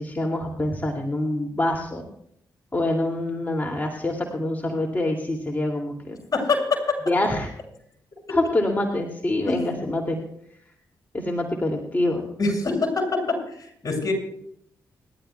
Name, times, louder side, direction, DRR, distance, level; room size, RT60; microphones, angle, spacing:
voice 1, 0.0-2.0 2.7-6.2 7.1-7.5 8.3-10.2 11.1-12.2, left 1 dB, 25° left, 0 dB, 2.6 m, -25 dB
voice 2, 6.3-6.6 9.5-9.6 12.4-13.2 13.6-14.1, left 3 dB, 45° left, 2 dB, 6.7 m, -24 dB
29.0 x 12.0 x 2.3 m, 0.71 s
supercardioid pair, 55°, 8 cm